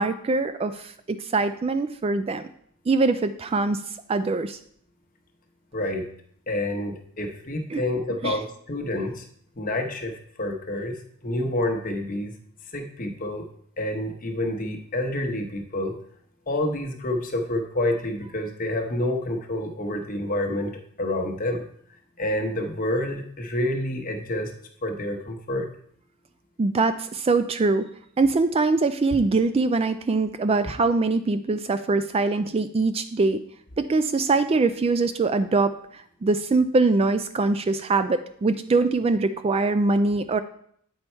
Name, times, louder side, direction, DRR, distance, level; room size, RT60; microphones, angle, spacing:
voice 1, 0.0-2.4 2.9-3.8 4.1-4.6 7.7-7.8 8.2-8.4 26.6-27.8 28.2-33.4 33.8-40.4, right 3 dB, 25° right, 11 dB, 0.3 m, -23 dB
voice 2, 5.7-6.0 6.5-9.2 9.6-11.0 11.2-12.3 12.7-13.4 13.8-15.9 16.5-20.7 21.0-21.6 22.2-24.5 24.8-25.7, left 1 dB, 40° left, 4 dB, 1.0 m, -28 dB
8.4 x 5.5 x 4.5 m, 0.65 s
head